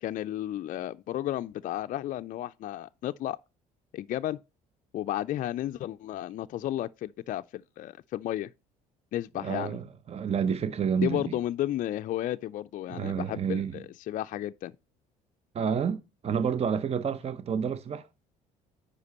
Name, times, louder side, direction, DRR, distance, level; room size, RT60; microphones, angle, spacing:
voice 1, 0.0-3.4 3.9-4.4 4.9-8.5 9.1-9.8 11.0-14.7, left 13 dB, 50° left, 0.4 m, -33 dB
voice 2, 9.4-11.4 12.9-13.8 15.5-18.0, right 7 dB, 35° right, 0.7 m, -29 dB
9.6 x 5.1 x 4.2 m
supercardioid pair, 75°, 17 cm